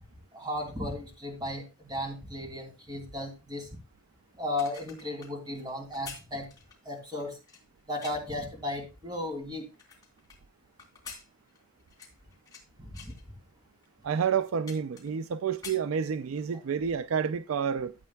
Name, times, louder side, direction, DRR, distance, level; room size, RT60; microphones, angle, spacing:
voice 1, 0.3-3.7 4.4-6.5 6.8-7.4 7.9-9.7 12.8-13.1, left 1 dB, 20° right, 2.8 m, -35 dB
sound 1, 4.4-8.4 9.0-10.4 10.8-12.6 12.9-13.2 13.8-13.9 14.2-15.3 15.5-16.5 16.9-17.0, left 5 dB, 20° left, 3.2 m, -48 dB
voice 2, 14.0-17.9, right 7 dB, 75° right, 0.4 m, -29 dB
13.5 x 8.4 x 2.3 m
head